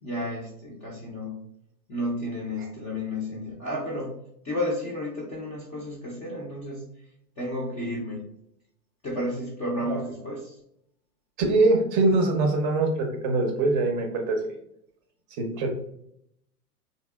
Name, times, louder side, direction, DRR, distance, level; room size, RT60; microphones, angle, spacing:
voice 1, 0.0-1.4 1.9-4.1 4.4-6.8 7.4-8.2 9.0-10.6, left 1 dB, 15° left, -5 dB, 0.4 m, -32 dB
voice 2, 11.4-14.4 15.4-15.7, right 2 dB, 35° right, 3 dB, 0.6 m, -23 dB
2.8 x 2.8 x 2.3 m, 0.73 s
hypercardioid pair, 115°, 48 cm